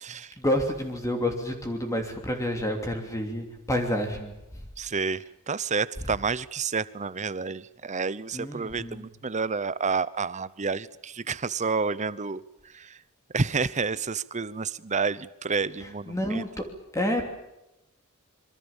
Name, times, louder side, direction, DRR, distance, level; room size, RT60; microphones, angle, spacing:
voice 1, 0.4-4.3 8.3-9.1 15.8-16.6 16.9-17.3, left 1 dB, 15° left, 2.9 m, -29 dB
voice 2, 4.8-5.2 5.5-12.4 13.3-16.4, right 4 dB, 35° right, 0.8 m, -29 dB
26.5 x 23.5 x 7.3 m
head